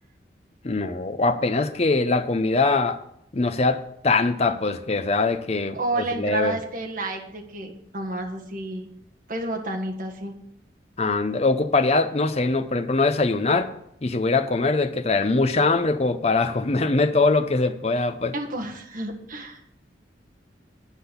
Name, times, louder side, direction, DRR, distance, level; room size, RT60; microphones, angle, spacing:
voice 1, 0.6-3.0 3.3-5.8 6.2-6.6 11.0-13.7 14.0-18.3, left 3 dB, 35° left, 9 dB, 0.6 m, -22 dB
voice 2, 5.7-8.9 9.3-10.3 18.3-19.6, right 2 dB, 50° right, 1 dB, 1.5 m, -30 dB
9.8 x 6.1 x 6.8 m, 0.76 s
head